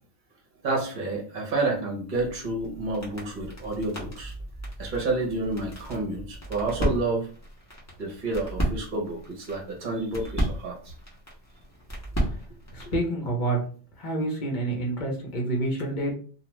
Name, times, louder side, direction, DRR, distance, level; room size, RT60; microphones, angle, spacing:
voice 1, 0.6-4.3 4.8-7.3 8.0-10.9, right 2 dB, 45° right, 0 dB, 0.9 m, -29 dB
sound 1, 2.2-13.0, right 1 dB, 15° left, 0.8 m, -34 dB
voice 2, 12.7-13.6 14.0-16.2, right 2 dB, 45° left, 0 dB, 1.0 m, -28 dB
2.4 x 2.3 x 3.0 m, 0.42 s
omnidirectional pair, 1.2 m